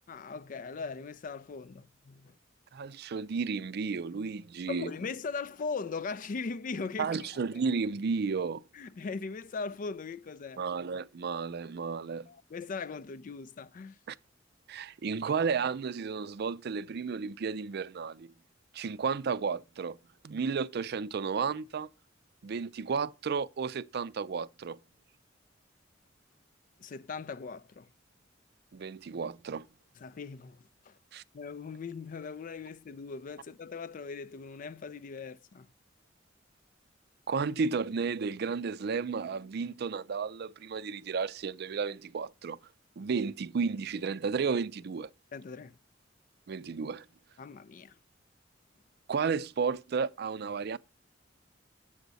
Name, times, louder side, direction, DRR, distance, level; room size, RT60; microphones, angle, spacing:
voice 1, 0.1-2.3 4.7-7.6 8.7-10.6 12.3-14.0 26.8-27.9 30.0-31.0 31.3-35.7 45.3-45.8 47.4-48.0, left 4 dB, 45° left, 0.4 m, -39 dB
voice 2, 2.7-4.9 7.0-8.6 10.6-12.3 14.1-14.2 14.7-18.3 18.7-20.0 20.2-21.9 22.4-24.8 28.7-29.7 31.1-31.2 37.3-42.6 43.0-45.1 46.5-47.0 49.1-50.8, right 5 dB, 55° right, 0.4 m, -33 dB
8.1 x 7.1 x 4.0 m
head